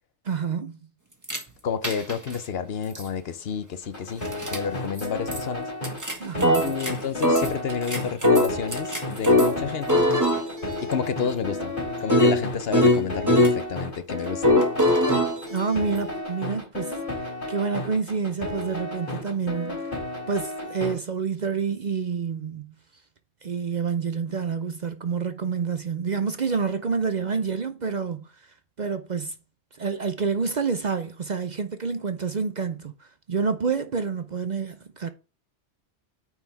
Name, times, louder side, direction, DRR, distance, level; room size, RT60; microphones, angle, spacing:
voice 1, 0.2-0.8 6.2-6.7 15.5-17.0 17.5-19.8 20.3-22.7 23.4-28.3 28.8-29.3 29.7-35.1, right 5 dB, 50° right, 0.6 m, -28 dB
sound 1, 1.2-1.4 1.8-2.4 2.9-3.0 4.2-4.6 5.0-5.1 5.3-5.4 5.8-6.9 7.2-9.6 9.9-13.6 14.4-16.2, left 1 dB, 15° right, 1.6 m, -22 dB
voice 2, 1.6-5.7 6.6-10.1 10.8-11.7 12.0-14.5, left 7 dB, 60° left, 0.9 m, -30 dB
sound 2, 3.8-20.9, left 1 dB, 45° left, 3.4 m, -33 dB
9.3 x 4.7 x 3.4 m
omnidirectional pair, 1.2 m